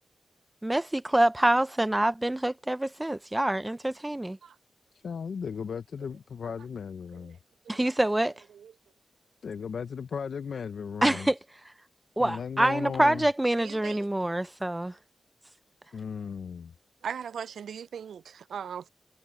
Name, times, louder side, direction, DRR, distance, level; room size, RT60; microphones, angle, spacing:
voice 1, 0.6-4.4 7.7-8.3 11.0-11.4 12.2-14.9, right 1 dB, 15° right, 0.5 m, -26 dB
voice 2, 5.0-7.4 9.4-11.3 12.2-13.3 15.9-16.7, left 6 dB, 75° left, 0.6 m, -36 dB
voice 3, 13.6-14.1 17.0-18.9, right 7 dB, 85° right, 0.3 m, -39 dB
cardioid pair, 45°, 0 cm